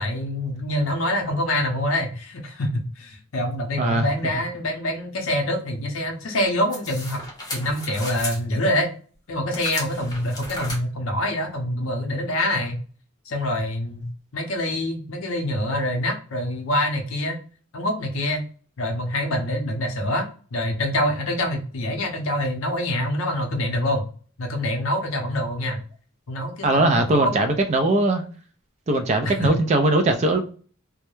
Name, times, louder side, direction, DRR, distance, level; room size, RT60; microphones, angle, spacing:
voice 1, 0.0-7.2 7.5-8.9 9.3-12.8 13.3-17.4 17.7-18.4 18.8-24.1 24.4-25.8 26.3-27.3 29.2-29.5, left 1 dB, 70° left, 0.6 m, -25 dB
sound 1, 6.7-8.4 9.5-10.8, left 2 dB, 20° left, 0.7 m, -34 dB
voice 2, 26.6-28.2 28.9-30.4, right 2 dB, 30° right, 0.4 m, -20 dB
2.2 x 2.1 x 2.9 m
head